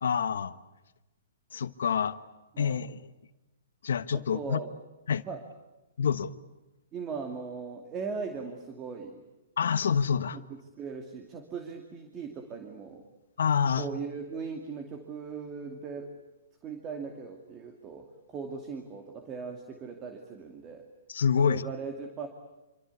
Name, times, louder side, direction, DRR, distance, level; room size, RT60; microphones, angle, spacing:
voice 1, 0.0-0.5 1.5-2.2 2.6-3.1 3.8-4.6 5.1-5.2 6.0-6.3 9.6-10.4 13.4-13.9 21.1-21.7, left 7 dB, 80° left, 12 dB, 1.2 m, -27 dB
voice 2, 4.1-4.7 5.3-5.4 6.9-9.2 10.3-10.4 10.8-13.0 13.8-16.1 16.6-20.8 21.4-22.3, right 5 dB, 20° right, 5 dB, 2.5 m, -39 dB
26.5 x 25.0 x 8.4 m, 1.0 s
hypercardioid pair, 155°, 0 cm